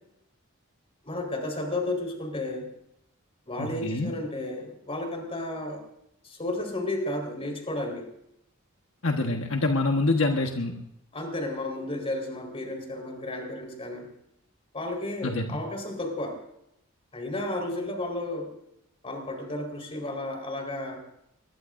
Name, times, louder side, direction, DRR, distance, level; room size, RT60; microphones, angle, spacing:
voice 1, 1.0-2.7 3.5-5.8 6.2-8.0 11.1-14.1 14.7-16.4 17.1-18.5 19.0-21.0, left 1 dB, 30° left, 2 dB, 4.3 m, -32 dB
voice 2, 3.6-4.1 9.0-10.7 15.2-15.6, left 2 dB, 70° left, 2 dB, 1.4 m, -26 dB
23.0 x 21.5 x 2.6 m, 0.78 s
head